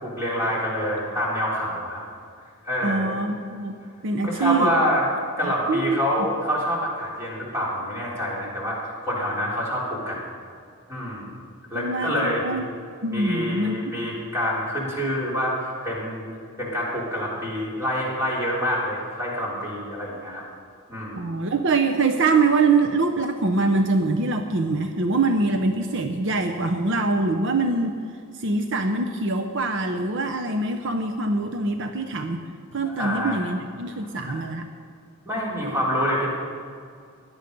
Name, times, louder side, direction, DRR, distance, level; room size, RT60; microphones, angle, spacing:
voice 1, 0.0-2.0 2.6-3.1 4.2-5.1 5.4-10.2 10.9-11.3 11.7-12.6 13.1-16.3 16.6-20.4 20.9-21.3 32.9-33.4 34.2-34.4 35.2-36.3, equal, 10° right, -6 dB, 3.7 m, -26 dB
voice 2, 2.8-3.8 4.0-4.7 5.4-6.0 11.7-12.6 13.0-13.8 21.2-28.0 28.4-32.4 32.7-34.7, right 3 dB, 55° right, 5 dB, 0.7 m, -24 dB
17.0 x 11.5 x 5.3 m, 2.3 s
head